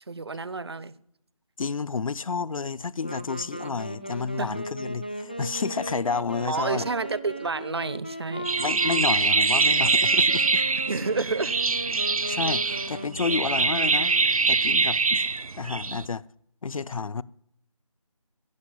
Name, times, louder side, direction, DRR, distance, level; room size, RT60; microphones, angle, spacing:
voice 1, 0.1-0.9 4.4-4.5 6.5-8.5 10.9-11.5, right 4 dB, 45° right, 0.6 m, -29 dB
voice 2, 1.6-6.9 8.6-10.6 12.3-14.1 14.5-15.2 15.6-16.2 16.6-17.2, left 5 dB, 70° left, 0.6 m, -30 dB
Wind instrument woodwind instrument, 3.0-14.7, right 1 dB, 15° left, 0.4 m, -37 dB
sound 1, 8.5-16.1, right 4 dB, 85° right, 0.7 m, -24 dB
16.0 x 5.6 x 9.8 m
figure-of-eight pair, 175°, 18 cm